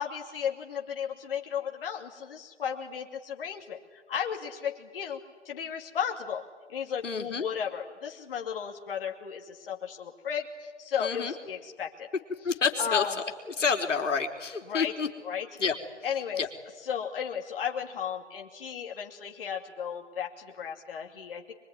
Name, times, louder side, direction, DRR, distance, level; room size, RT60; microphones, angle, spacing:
voice 1, 0.0-5.2 5.4-6.4 6.7-12.1 12.4-12.5 12.8-13.1 14.7-14.9 15.2-15.5 16.0-16.4 16.8-21.5, left 8 dB, 50° left, 1 dB, 2.7 m, -34 dB
voice 2, 7.0-7.4 11.0-11.3 12.4-13.1 13.5-15.1 15.6-15.8 16.4-16.5, left 5 dB, 85° left, 4 dB, 3.8 m, -28 dB
24.0 x 24.0 x 9.8 m, 1.5 s
hypercardioid pair, 160°, 36 cm